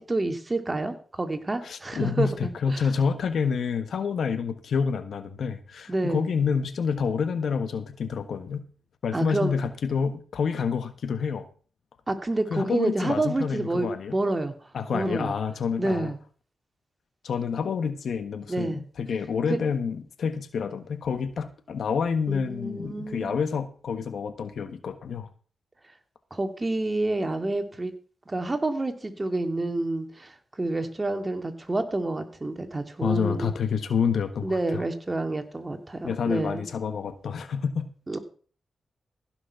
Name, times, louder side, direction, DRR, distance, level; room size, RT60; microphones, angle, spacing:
voice 1, 0.0-2.8 5.9-6.3 9.1-9.5 12.1-14.5 14.9-15.4 15.8-16.2 18.5-18.8 19.5-19.6 22.3-23.4 26.3-27.9 28.3-33.5 34.4-36.7 38.1-38.2, right 2 dB, 30° right, 7 dB, 2.0 m, -28 dB
voice 2, 1.6-8.7 9.0-11.5 12.5-14.2 14.7-16.1 17.2-25.3 33.0-34.8 36.0-37.9, left 6 dB, 75° left, 10 dB, 1.4 m, -28 dB
15.5 x 6.3 x 5.7 m, 0.42 s
cardioid pair, 60°, 0 cm